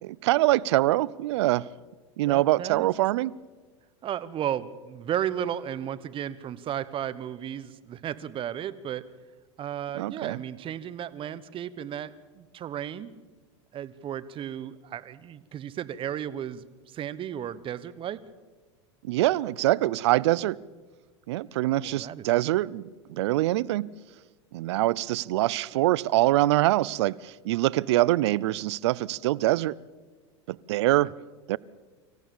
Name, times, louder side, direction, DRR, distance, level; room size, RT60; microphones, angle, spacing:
voice 1, 0.0-1.7 2.2-3.4 9.9-10.4 19.0-20.6 21.3-23.9 24.5-29.8 30.5-31.1 31.5-31.6, right 16 dB, 70° right, 0.6 m, -24 dB
voice 2, 2.3-2.9 4.0-9.0 9.6-13.1 13.7-18.2 21.9-22.2, right 10 dB, 35° right, 1.1 m, -34 dB
25.5 x 15.0 x 7.2 m
hypercardioid pair, 90°, 15 cm